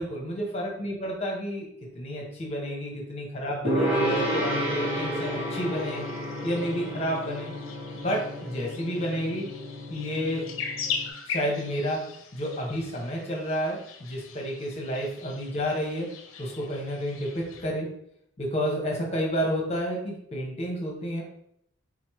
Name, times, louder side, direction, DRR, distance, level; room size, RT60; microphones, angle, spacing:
voice 1, 0.0-1.7 1.9-6.0 6.4-7.5 7.9-9.5 9.9-10.4 11.3-16.1 16.4-17.9 18.4-21.2, equal, 30° left, -1 dB, 1.0 m, -30 dB
Gong, 3.6-11.1, equal, 75° right, 1.3 m, -31 dB
sound 1, 4.9-17.7, left 6 dB, 75° left, 0.5 m, -41 dB
3.8 x 3.1 x 3.1 m, 0.72 s
head